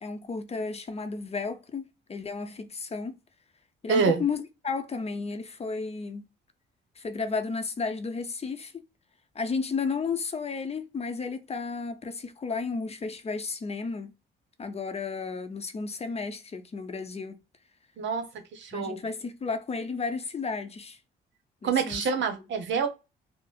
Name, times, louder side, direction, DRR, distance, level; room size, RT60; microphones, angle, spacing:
voice 1, 0.0-3.1 3.8-6.2 7.0-8.8 9.3-14.1 14.6-17.4 18.7-21.0 21.6-22.0, left 4 dB, 30° left, 0.6 m, -33 dB
voice 2, 3.9-4.2 18.0-19.0 21.6-22.9, right 5 dB, 70° right, 0.9 m, -27 dB
4.7 x 2.0 x 2.3 m
cardioid pair, 90°, 20 cm